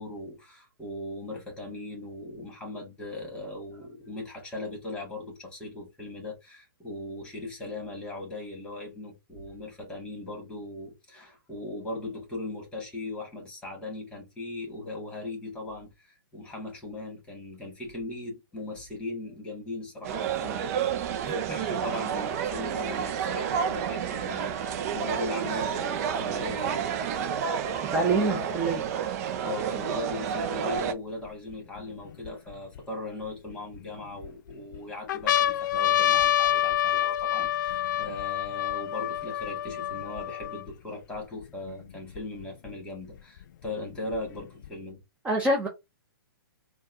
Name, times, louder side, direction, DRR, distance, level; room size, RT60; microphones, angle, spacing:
voice 1, 0.0-26.9 27.9-28.5 29.4-45.0, left 2 dB, 10° left, 2.1 m, -39 dB
sound 1, 20.0-30.9, right 7 dB, 45° right, 0.6 m, -30 dB
voice 2, 27.9-28.8 45.2-45.7, right 2 dB, 10° right, 0.8 m, -25 dB
sound 2, 30.8-30.9 31.5-32.8 33.5-34.3 34.7-34.8 35.1-40.7 41.4-41.5 41.7-42.7 43.6-44.7, left 12 dB, 55° left, 0.4 m, -27 dB
4.5 x 2.4 x 2.8 m
hypercardioid pair, 125°, 12 cm